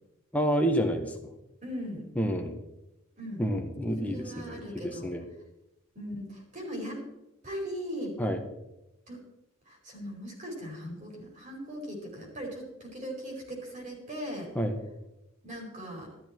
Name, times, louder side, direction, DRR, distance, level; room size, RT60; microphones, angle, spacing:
voice 1, 0.3-1.1 2.1-2.6 3.4-5.3 8.2-8.4 14.5-14.7, equal, 5° left, 3 dB, 1.5 m, -29 dB
voice 2, 1.6-2.0 3.2-3.5 4.1-5.1 5.9-7.0 7.4-8.2 9.1-9.2 9.7-14.5 15.4-16.1, equal, 35° right, 0 dB, 5.0 m, -39 dB
13.5 x 13.0 x 4.6 m, 0.93 s
head